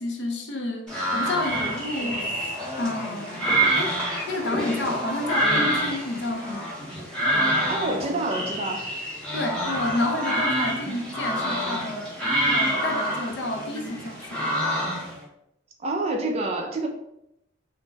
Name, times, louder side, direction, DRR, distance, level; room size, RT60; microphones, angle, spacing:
voice 1, 0.0-2.5 2.8-3.4 3.8-4.0 4.3-6.7 9.3-12.2 12.5-14.5, left 2 dB, 60° left, 3 dB, 0.5 m, -30 dB
sound 1, 0.9-15.2, right 1 dB, 5° left, 0.7 m, -27 dB
voice 2, 7.7-8.8 10.9-11.0 15.8-16.9, right 2 dB, 30° right, 2 dB, 0.4 m, -27 dB
2.5 x 2.0 x 3.2 m, 0.80 s
head